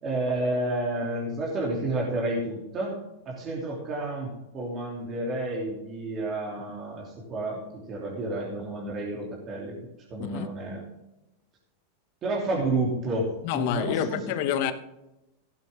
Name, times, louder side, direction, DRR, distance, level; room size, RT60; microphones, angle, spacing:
voice 1, 0.0-3.0 3.2-9.8 10.1-10.8 12.2-14.2, right 2 dB, 30° right, 3.1 m, -30 dB
voice 2, 13.4-14.7, left 9 dB, 55° left, 1.1 m, -27 dB
16.0 x 8.9 x 3.7 m
supercardioid pair, 135°, 0 cm